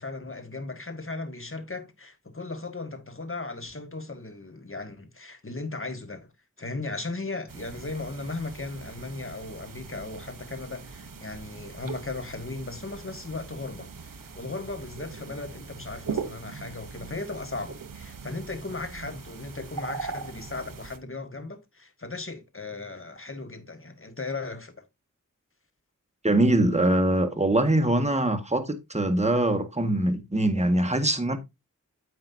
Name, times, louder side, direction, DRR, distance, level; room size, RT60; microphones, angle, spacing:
voice 1, 0.0-6.3 6.6-24.8, left 3 dB, 40° left, 1.8 m, -37 dB
sound 1, 7.5-21.0, right 5 dB, 90° right, 1.0 m, -40 dB
voice 2, 26.2-31.4, right 1 dB, 20° right, 1.7 m, -23 dB
9.5 x 7.7 x 2.7 m
wide cardioid pair, 60°, 32 cm